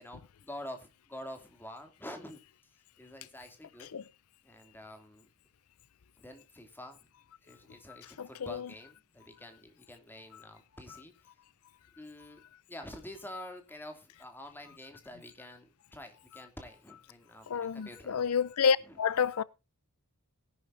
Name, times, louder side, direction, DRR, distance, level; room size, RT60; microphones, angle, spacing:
voice 1, 0.0-2.4 3.0-3.9 4.4-5.3 6.2-7.0 7.4-11.1 12.0-12.4 12.7-18.2 18.9-19.0, left 1 dB, 10° left, 2.8 m, -47 dB
voice 2, 8.2-8.7 17.5-19.4, left 6 dB, 70° left, 0.5 m, -29 dB
17.5 x 11.0 x 2.7 m
head